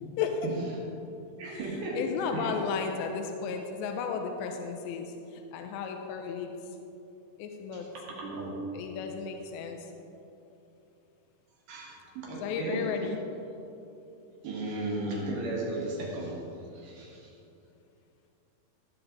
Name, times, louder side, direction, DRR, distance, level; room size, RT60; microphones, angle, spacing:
voice 1, 0.0-0.5 2.0-5.1 5.5-6.6 7.4-7.9 8.7-9.9 12.4-13.2, left 6 dB, 80° left, 4 dB, 2.8 m, -33 dB
voice 2, 1.4-2.0 2.3-2.5 7.9-8.9 11.7-12.8 14.4-16.4 16.7-17.3, right 2 dB, 60° right, -4 dB, 2.8 m, -35 dB
14.0 x 7.6 x 3.9 m, 2.8 s
omnidirectional pair, 5.2 m